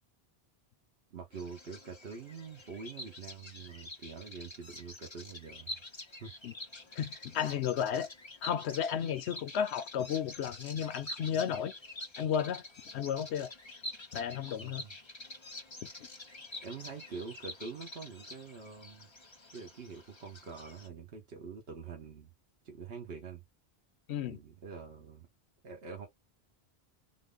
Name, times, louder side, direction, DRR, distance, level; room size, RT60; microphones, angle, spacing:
voice 1, 1.1-5.8 6.2-6.3 14.6-14.9 16.6-19.1 19.5-22.3 22.6-23.4 24.3-25.3 25.6-26.1, right 5 dB, 70° right, 1.2 m, -45 dB
Bird vocalization bird call bird song, 1.3-20.9, left 1 dB, 30° left, 0.9 m, -47 dB
voice 2, 7.0-8.1 8.4-11.7 12.2-12.6 12.9-13.5 14.1-14.8 24.1-24.4, left 8 dB, 80° left, 0.9 m, -33 dB
3.9 x 2.1 x 3.6 m
omnidirectional pair, 1.1 m